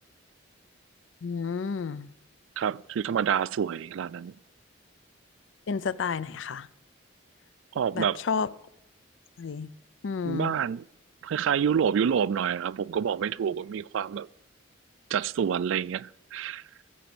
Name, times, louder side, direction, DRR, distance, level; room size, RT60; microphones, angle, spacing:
voice 1, 1.2-2.1 5.7-6.7 7.9-8.5 9.4-9.7 10.0-10.5, left 5 dB, 75° left, 0.5 m, -31 dB
voice 2, 2.6-4.3 7.7-8.2 10.3-10.8 11.2-14.3 15.1-16.6, right 8 dB, 80° right, 0.3 m, -28 dB
14.5 x 5.0 x 7.0 m
head